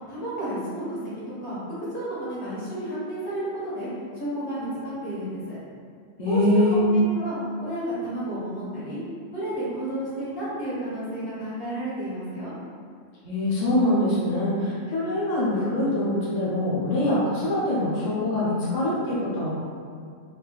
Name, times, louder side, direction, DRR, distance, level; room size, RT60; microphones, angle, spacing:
voice 1, 0.1-1.1 1.4-1.6 1.9-3.9 4.1-5.6 6.3-6.6 6.9-9.0 9.3-12.5, right 1 dB, 65° left, -10 dB, 1.6 m, -31 dB
voice 2, 6.2-6.9 13.2-19.5, left 1 dB, 40° left, -8 dB, 0.7 m, -24 dB
4.0 x 2.6 x 2.3 m, 2.2 s
omnidirectional pair, 1.3 m